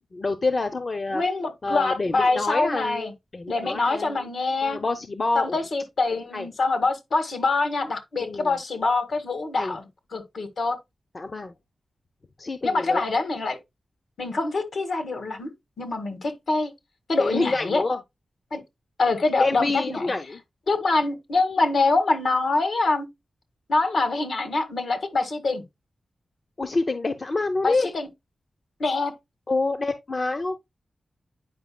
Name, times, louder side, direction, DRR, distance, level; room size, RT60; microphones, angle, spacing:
voice 1, 0.1-1.2 1.6-4.2 4.6-5.6 6.3-6.5 8.2-8.5 9.6-9.8 11.1-11.5 12.4-13.0 17.2-18.0 19.4-20.4 26.6-27.9 29.5-30.6, left 3 dB, 45° left, 0.7 m, -27 dB
voice 2, 1.1-3.1 3.5-4.8 5.3-10.8 12.6-13.6 14.2-15.5 15.8-16.7 17.1-17.8 18.5-18.6 19.0-20.1 20.7-23.1 23.7-25.6 27.6-28.1 28.8-29.1, left 3 dB, 70° left, 1.8 m, -25 dB
9.5 x 5.1 x 2.2 m
wide cardioid pair, 85°, 0 cm